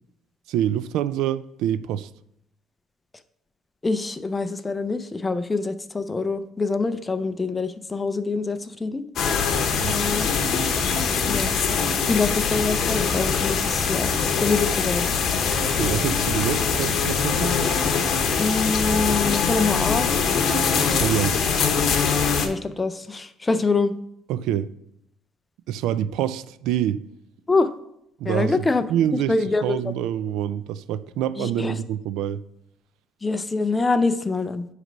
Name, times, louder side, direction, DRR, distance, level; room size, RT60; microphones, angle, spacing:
voice 1, 0.5-2.1 9.8-10.0 15.6-17.5 21.0-21.5 24.3-24.7 25.7-27.0 28.2-29.3 29.6-32.4, right 10 dB, 80° right, 0.3 m, -26 dB
voice 2, 3.8-9.0 9.8-10.3 11.3-14.1 14.4-15.1 18.4-20.1 22.4-24.0 27.5-27.7 28.2-28.8 29.3-29.9 31.4-31.7 33.2-34.6, left 3 dB, 15° left, 0.4 m, -25 dB
sound 1, 9.2-22.5, left 5 dB, 50° left, 0.9 m, -23 dB
9.9 x 3.3 x 5.2 m
cardioid pair, 145°, 0 cm